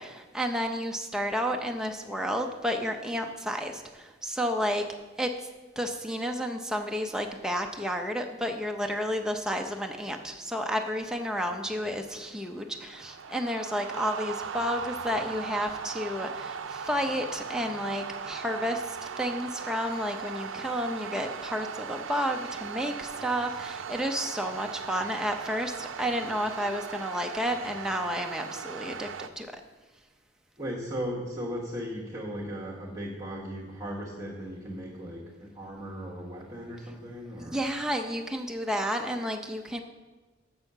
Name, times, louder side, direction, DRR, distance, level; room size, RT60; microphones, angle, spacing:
voice 1, 0.0-4.9 5.2-5.5 5.8-29.6 37.4-39.8, equal, 5° right, 3 dB, 0.6 m, -31 dB
sound 1, 11.5-29.3, right 6 dB, 80° right, 0.5 m, -38 dB
voice 2, 30.6-37.6, equal, 20° right, -6 dB, 1.2 m, -37 dB
7.2 x 6.2 x 6.6 m, 1.2 s
head